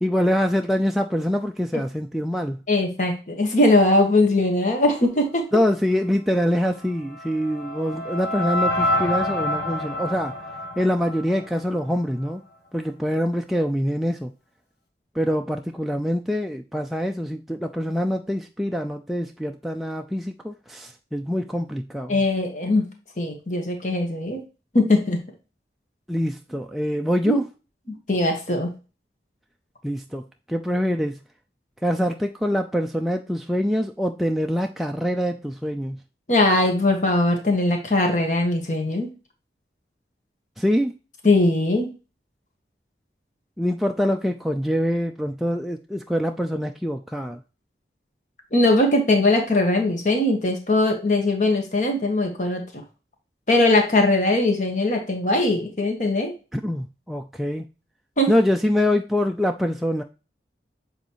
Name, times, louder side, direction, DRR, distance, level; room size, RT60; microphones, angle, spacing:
voice 1, 0.0-2.6 5.5-10.3 10.8-12.4 12.7-14.3 15.2-22.2 26.1-27.4 29.8-30.2 30.5-31.2 31.8-36.0 40.6-40.9 43.6-47.4 56.5-57.7 58.3-60.0, equal, ahead, 3 dB, 0.3 m, -24 dB
voice 2, 2.7-5.4 22.1-22.8 23.2-24.4 24.7-25.2 27.2-27.4 28.1-28.7 36.3-39.1 41.2-41.9 48.5-52.8 53.5-56.3 58.2-58.3, left 2 dB, 45° left, 2 dB, 1.6 m, -20 dB
sound 1, 6.7-11.9, left 1 dB, 70° left, 1.8 m, -27 dB
7.7 x 4.1 x 3.0 m, 0.32 s
head